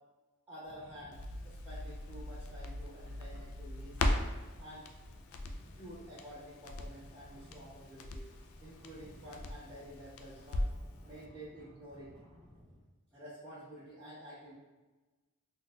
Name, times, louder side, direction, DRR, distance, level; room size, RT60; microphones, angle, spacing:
voice 1, 0.5-4.2 4.6-4.8 5.8-8.3 8.6-10.7 11.0-12.1 13.1-14.5, equal, 10° right, -17 dB, 1.4 m, -50 dB
sound 1, 0.6-12.8, equal, 15° left, 1.2 m, -58 dB
Crackle, 1.1-10.9 11.2-11.3, left 1 dB, 70° left, 0.3 m, -39 dB
3.7 x 2.5 x 2.3 m, 1.2 s
head